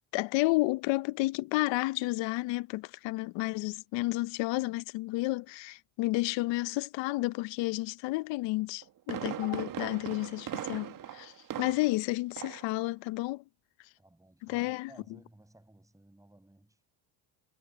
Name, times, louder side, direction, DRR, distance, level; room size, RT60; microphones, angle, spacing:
voice 1, 0.1-13.4 14.4-14.9, left 21 dB, 80° left, 0.8 m, -31 dB
Fireworks, 8.6-12.1 12.4-12.7 13.1-13.2, right 11 dB, 45° right, 1.4 m, -39 dB
voice 2, 14.0-16.8, right 1 dB, 5° right, 7.1 m, -58 dB
supercardioid pair, 95°, 44 cm